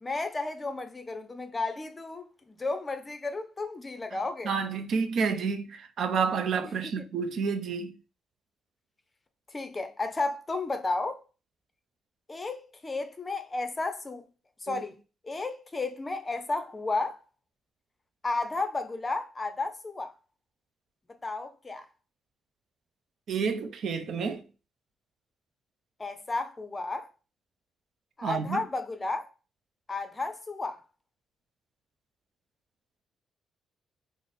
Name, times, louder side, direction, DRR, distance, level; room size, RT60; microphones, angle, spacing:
voice 1, 0.0-4.5 6.6-6.9 9.5-11.2 12.3-14.2 14.6-15.0 15.2-17.2 18.2-20.1 21.2-21.9 26.0-27.1 28.2-29.3 29.9-30.8, left 3 dB, 25° left, 0.5 m, -33 dB
voice 2, 4.4-7.9 14.7-14.8 23.3-24.4 28.2-28.6, right 5 dB, 60° right, 0.5 m, -29 dB
3.3 x 2.0 x 4.0 m
cardioid pair, 90°, 0 cm